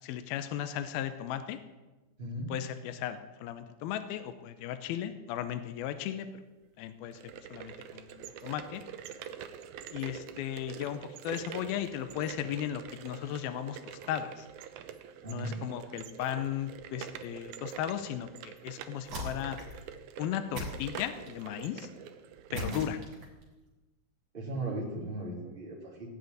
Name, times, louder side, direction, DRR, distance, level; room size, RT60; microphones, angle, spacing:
voice 1, 0.0-1.6 2.5-6.4 6.8-8.8 9.9-14.5 15.3-19.6 20.2-21.9 22.5-23.0, left 11 dB, 75° left, 10 dB, 2.5 m, -36 dB
voice 2, 2.2-2.5 15.2-15.5 22.5-22.8 24.3-26.1, right 1 dB, 15° right, -4 dB, 3.7 m, -37 dB
sound 1, 7.0-22.9, right 9 dB, 85° right, 1.7 m, -46 dB
sound 2, 19.0-19.8 20.5-21.5 22.5-23.4, equal, 40° right, 4.1 m, -40 dB
17.0 x 6.6 x 9.4 m, 1.1 s
omnidirectional pair, 4.7 m